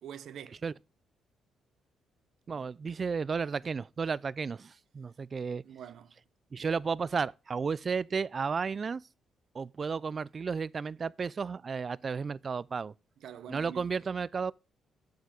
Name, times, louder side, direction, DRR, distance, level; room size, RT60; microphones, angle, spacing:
voice 1, 0.0-0.6 5.6-6.2 13.2-13.9, right 9 dB, 70° right, 0.9 m, -46 dB
voice 2, 2.5-5.6 6.5-9.0 9.5-12.9 13.5-14.5, right 5 dB, 40° right, 0.4 m, -33 dB
8.1 x 7.8 x 5.1 m
cardioid pair, 90°, 0 cm